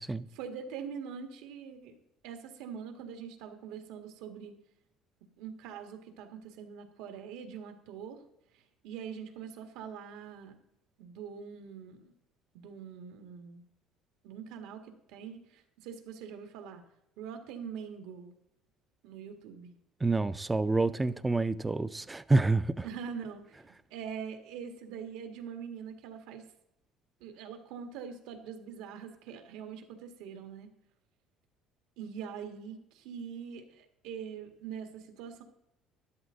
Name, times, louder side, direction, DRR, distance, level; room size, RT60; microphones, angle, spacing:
voice 1, 0.3-2.0 2.2-4.6 5.4-8.2 8.5-10.6 11.0-12.1 12.5-13.6 14.2-16.8 17.2-18.3 19.0-19.7 22.8-26.4 27.2-30.7 32.0-35.4, right 7 dB, 85° right, 1.8 m, -43 dB
voice 2, 20.0-22.9, right 3 dB, 10° right, 0.3 m, -28 dB
12.5 x 12.0 x 3.9 m
cardioid pair, 170°, 0 cm